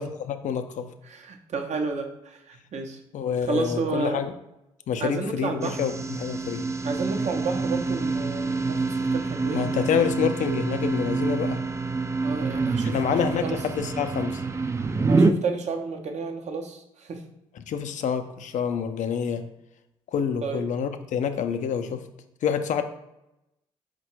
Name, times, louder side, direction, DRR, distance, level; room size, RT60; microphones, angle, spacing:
voice 1, 0.0-0.9 3.1-4.3 4.9-6.6 9.5-11.6 12.9-14.4 17.7-19.4 20.1-22.0 22.4-22.8, left 7 dB, 60° left, 8 dB, 0.4 m, -27 dB
voice 2, 1.0-3.0 3.5-4.2 5.0-5.8 6.8-10.2 12.2-13.6 15.1-17.2 20.4-20.7, right 4 dB, 55° right, 4 dB, 0.6 m, -31 dB
sound 1, 5.6-15.3, right 4 dB, 20° right, 0.3 m, -26 dB
4.0 x 2.2 x 4.4 m, 0.87 s
hypercardioid pair, 50°, 14 cm